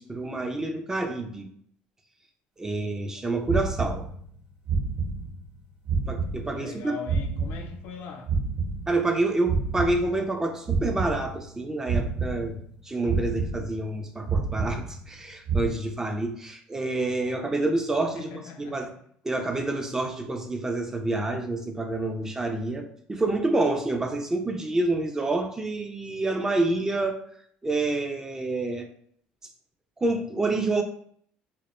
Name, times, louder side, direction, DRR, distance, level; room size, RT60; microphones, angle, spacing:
voice 1, 0.0-1.5 2.6-4.1 6.1-7.0 8.9-12.6 12.8-18.9 19.2-22.8 23.1-27.2 27.6-28.9 30.0-30.8, right 2 dB, 15° right, 4 dB, 0.4 m, -28 dB
sound 1, 3.5-4.4 4.7-5.6 5.9-8.0 8.3-10.4 10.7-11.6 11.9-12.8 13.1-14.0 14.3-15.2 15.5-15.7, right 4 dB, 50° right, 0.9 m, -29 dB
voice 2, 6.5-8.3 18.1-18.8, left 4 dB, 70° left, 4 dB, 0.4 m, -40 dB
2.1 x 2.1 x 2.9 m, 0.63 s
supercardioid pair, 105°, 3 cm